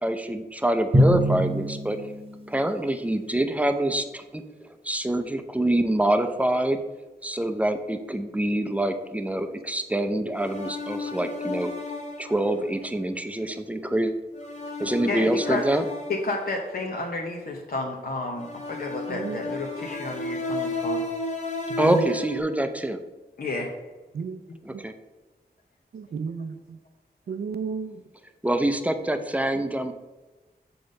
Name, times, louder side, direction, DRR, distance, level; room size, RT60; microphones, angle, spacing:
voice 1, 0.0-2.0 2.5-4.4 4.8-6.8 7.2-11.7 12.2-14.1 14.8-15.8 21.8-23.0 24.7-24.9 28.4-29.9, right 1 dB, 10° right, 0.5 m, -25 dB
Drum, 0.9-2.7, equal, 30° right, 1.0 m, -23 dB
sound 1, 10.3-12.8 14.3-16.7 18.3-22.4, left 2 dB, 45° left, 1.1 m, -33 dB
voice 2, 15.1-15.6 16.2-21.0 23.4-23.7, left 2 dB, 65° left, 0.8 m, -31 dB
voice 3, 19.1-19.4 21.7-21.8 24.1-24.4 25.9-26.6 27.3-28.0, right 5 dB, 70° right, 0.5 m, -32 dB
6.9 x 3.9 x 5.2 m
wide cardioid pair, 95°, 17 cm